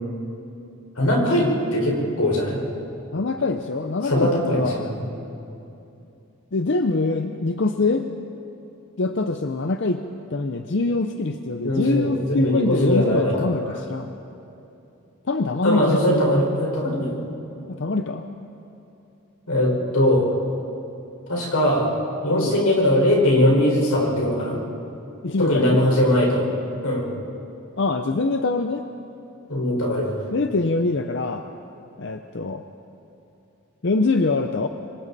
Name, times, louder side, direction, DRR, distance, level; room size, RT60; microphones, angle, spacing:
voice 1, 0.9-2.6 4.0-5.0 11.6-13.7 15.6-17.2 19.5-20.4 21.3-21.9 22.2-24.6 25.4-26.4 26.8-27.0 29.5-30.1, left 1 dB, 85° left, -2 dB, 5.0 m, -20 dB
voice 2, 3.1-4.9 6.5-8.0 9.0-10.0 10.3-14.1 15.3-16.3 17.7-18.3 22.3-22.6 25.2-25.9 27.8-28.8 30.3-31.5 32.0-32.6 33.8-34.7, left 3 dB, 55° left, 7 dB, 0.6 m, -24 dB
26.5 x 24.0 x 4.2 m, 2.8 s
head